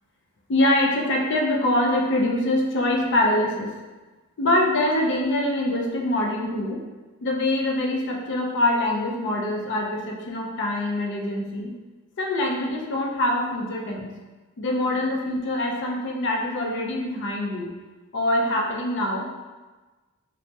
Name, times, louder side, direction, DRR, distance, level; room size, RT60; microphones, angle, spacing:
voice 1, 0.5-3.7 4.4-6.8 7.2-11.7 12.2-14.1 14.6-17.7 18.1-19.3, left 1 dB, 55° left, 0 dB, 0.4 m, -24 dB
3.2 x 2.0 x 2.7 m, 1.2 s
head